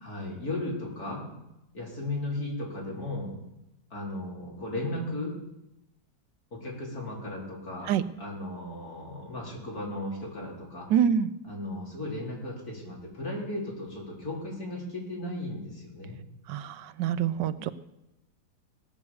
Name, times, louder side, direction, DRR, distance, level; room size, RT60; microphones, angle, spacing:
voice 1, 0.0-1.2 1.7-3.3 3.9-5.3 6.5-7.9 8.2-10.9 11.5-16.2, left 1 dB, 60° left, -3 dB, 4.2 m, -35 dB
voice 2, 10.9-11.3 16.5-17.7, right 8 dB, 90° right, 14 dB, 1.4 m, -26 dB
17.5 x 8.5 x 6.9 m, 0.90 s
omnidirectional pair, 1.8 m